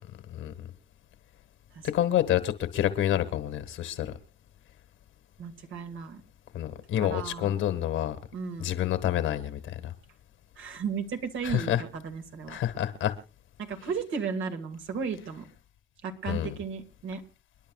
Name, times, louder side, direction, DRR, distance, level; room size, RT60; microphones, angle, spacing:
voice 1, 0.3-0.7 1.8-4.1 6.5-8.2 8.6-9.9 11.4-11.8 12.5-13.1 16.3-16.5, left 11 dB, 85° left, 10 dB, 1.8 m, -28 dB
voice 2, 5.4-6.2 7.0-7.6 8.3-8.7 10.6-12.6 13.6-15.5 16.0-17.2, right 6 dB, 80° right, 5 dB, 2.2 m, -35 dB
29.5 x 10.5 x 2.4 m, 0.29 s
cardioid pair, 90°, 20 cm